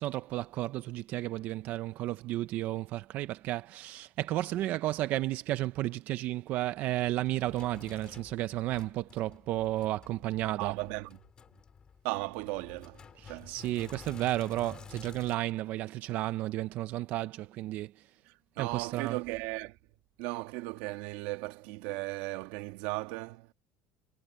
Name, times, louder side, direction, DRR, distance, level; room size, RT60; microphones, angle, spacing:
voice 1, 0.0-10.7 13.2-17.9 18.6-19.2, right 15 dB, 45° right, 0.5 m, -33 dB
Sink (filling or washing), 6.5-15.3, left 6 dB, 20° left, 1.9 m, -52 dB
voice 2, 10.5-11.2 12.0-13.5 18.3-19.8 20.2-23.5, right 20 dB, 80° right, 1.6 m, -37 dB
cardioid pair, 175°, 4 cm